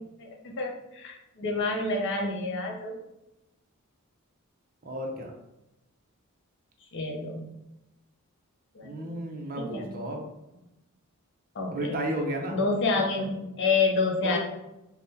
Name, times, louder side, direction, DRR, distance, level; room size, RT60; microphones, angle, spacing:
voice 1, 0.0-2.9 6.9-7.5 8.7-9.2 9.6-9.9 11.5-11.9 12.5-14.4, left 3 dB, 55° left, 1 dB, 0.6 m, -28 dB
voice 2, 4.8-5.3 8.8-10.2 11.7-12.6 14.2-14.4, right 1 dB, 40° right, 2 dB, 0.5 m, -33 dB
3.5 x 2.1 x 2.7 m, 0.91 s
head